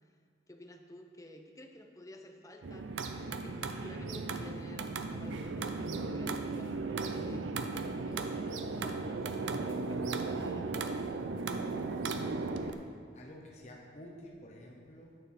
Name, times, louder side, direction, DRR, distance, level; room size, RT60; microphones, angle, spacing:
voice 1, 0.5-2.9 3.3-7.4 8.0-10.7, left 1 dB, 15° left, 4 dB, 0.6 m, -52 dB
sound 1, 2.6-12.7, right 3 dB, 80° right, 0.5 m, -36 dB
voice 2, 11.9-12.8 13.1-15.2, left 1 dB, 40° left, -1 dB, 0.9 m, -51 dB
8.9 x 7.0 x 4.3 m, 2.1 s
head